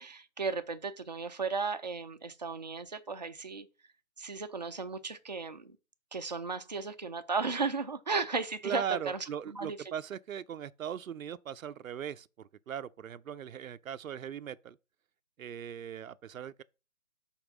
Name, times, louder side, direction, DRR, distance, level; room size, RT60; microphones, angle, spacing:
voice 1, 0.0-3.7 4.2-5.8 6.1-9.8, right 4 dB, 35° right, 0.4 m, -35 dB
voice 2, 8.6-14.8 15.4-16.6, right 8 dB, 80° right, 0.5 m, -39 dB
5.3 x 4.3 x 6.0 m
hypercardioid pair, 160°, 40 cm